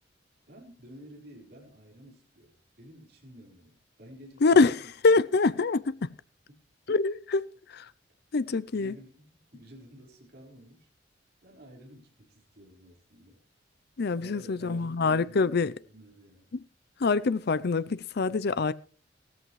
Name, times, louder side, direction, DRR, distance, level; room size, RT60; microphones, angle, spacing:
voice 1, 0.5-4.5 5.0-5.1 6.5-6.6 8.7-10.9 11.4-13.4 14.2-15.4 15.9-16.5, equal, 60° right, 4.7 m, -51 dB
voice 2, 4.4-6.2 6.9-7.9 8.3-8.9 14.0-15.7 16.5-16.7 17.0-18.7, left 4 dB, 60° left, 0.6 m, -25 dB
16.5 x 14.0 x 3.2 m
head